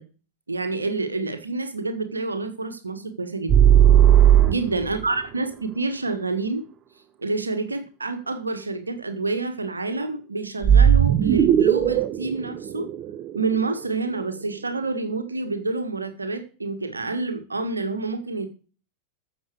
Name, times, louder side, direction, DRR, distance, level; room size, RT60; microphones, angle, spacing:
voice 1, 0.5-3.7 4.5-6.6 7.2-12.9 13.3-18.5, right 3 dB, 80° right, 9 dB, 1.7 m, -28 dB
sound 1, 3.5-5.0 10.6-13.7, right 10 dB, 35° right, 1.0 m, -16 dB
13.5 x 7.4 x 4.8 m, 0.38 s
figure-of-eight pair, 90°, 0 cm